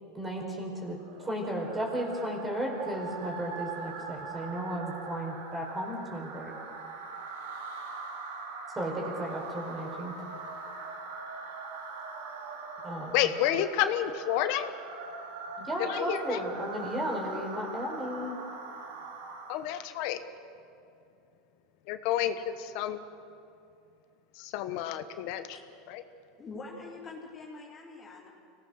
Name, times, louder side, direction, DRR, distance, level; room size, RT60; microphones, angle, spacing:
voice 1, 0.1-6.5 8.7-10.1 12.8-13.3 15.6-18.4, equal, 15° right, 0 dB, 4.8 m, -34 dB
sound 1, 0.9-19.9, right 4 dB, 90° right, 3.2 m, -42 dB
voice 2, 13.1-14.7 15.8-16.4 19.5-20.2 21.9-23.0 24.4-25.6 25.9-26.0, left 11 dB, 65° left, 10 dB, 1.2 m, -30 dB
voice 3, 26.4-28.3, left 3 dB, 30° left, -3 dB, 3.9 m, -44 dB
24.5 x 18.0 x 6.6 m, 2.6 s
supercardioid pair, 125°, 0 cm